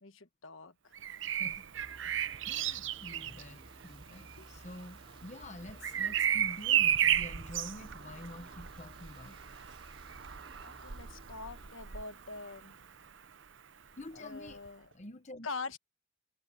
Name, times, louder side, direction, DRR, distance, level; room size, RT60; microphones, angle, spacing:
voice 1, 0.0-0.9 4.4-4.5 10.6-12.8 14.1-14.9 15.4-15.8, left 3 dB, 70° left, 1.3 m, -44 dB
Bird vocalization bird call bird song, 0.9-12.7 14.5-14.7, right 10 dB, 60° right, 0.8 m, -34 dB
voice 2, 1.3-1.6 2.0-2.1 2.5-9.5 11.9-12.0 14.0-15.5, left 1 dB, 35° left, 1.1 m, -48 dB
sound 1, 1.7-11.7, right 1 dB, 25° right, 2.7 m, -57 dB
head